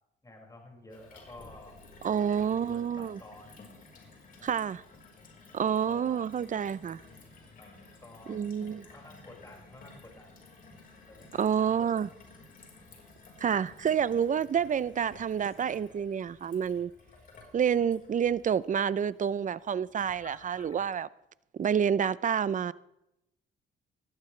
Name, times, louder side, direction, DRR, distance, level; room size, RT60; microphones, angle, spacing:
voice 1, 0.2-3.6 4.4-4.7 5.9-6.3 7.6-7.7 8.0-8.4 8.8-10.4 11.1-12.1, left 1 dB, 15° left, 5.5 m, -52 dB
Gurgling / Water tap faucet / Sink (filling or washing), 0.9-20.8, left 3 dB, 45° left, 4.4 m, -54 dB
voice 2, 2.0-3.2 4.4-4.8 5.5-7.0 8.3-8.9 11.4-12.1 13.4-16.9 17.5-21.1 21.5-22.7, right 8 dB, 40° right, 0.6 m, -28 dB
19.5 x 13.5 x 3.3 m
cardioid pair, 90°, 20 cm